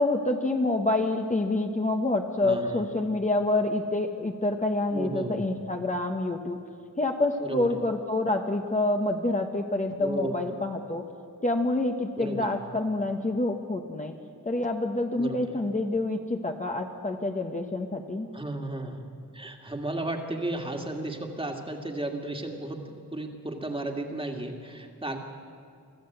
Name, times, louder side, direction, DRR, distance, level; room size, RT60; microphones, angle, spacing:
voice 1, 0.0-6.6 7.0-11.0 11.4-14.1 14.4-18.3, left 2 dB, 25° left, 2 dB, 1.1 m, -27 dB
voice 2, 2.4-2.9 4.9-5.5 7.4-7.8 10.0-10.3 12.2-12.6 15.1-15.6 18.3-19.1 19.3-25.2, right 2 dB, 15° right, 3 dB, 2.0 m, -34 dB
24.5 x 14.5 x 7.9 m, 2.3 s
wide cardioid pair, 125°, 33 cm